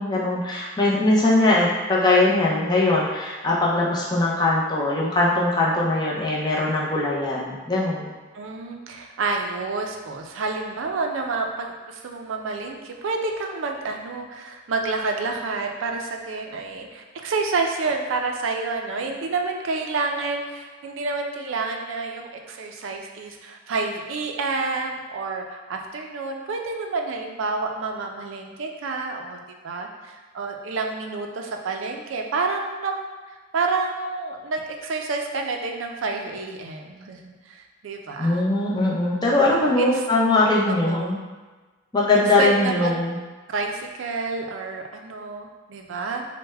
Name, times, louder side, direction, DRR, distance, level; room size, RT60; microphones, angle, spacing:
voice 1, 0.0-8.1 38.2-41.2 41.9-43.2, left 2 dB, 20° left, -5 dB, 0.5 m, -21 dB
voice 2, 1.2-1.6 8.3-29.4 29.6-33.0 33.5-38.5 39.5-39.9 40.7-41.2 42.1-43.0 43.5-46.2, right 3 dB, 70° right, 3 dB, 0.4 m, -29 dB
3.3 x 2.1 x 3.3 m, 1.3 s
head